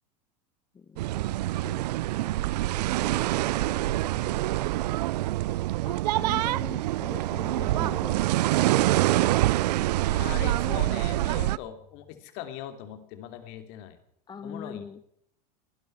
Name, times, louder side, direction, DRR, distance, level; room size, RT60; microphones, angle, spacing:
sound 1, 1.0-11.6, right 16 dB, 75° right, 0.5 m, -26 dB
voice 1, 1.6-1.9 2.2-4.3 5.8-9.1 10.3-10.9 14.3-15.0, left 6 dB, 20° left, 12 dB, 1.0 m, -44 dB
voice 2, 10.1-14.0 14.4-14.8, left 11 dB, 55° left, 9 dB, 3.0 m, -40 dB
23.0 x 12.0 x 4.6 m, 0.71 s
hypercardioid pair, 100°, 21 cm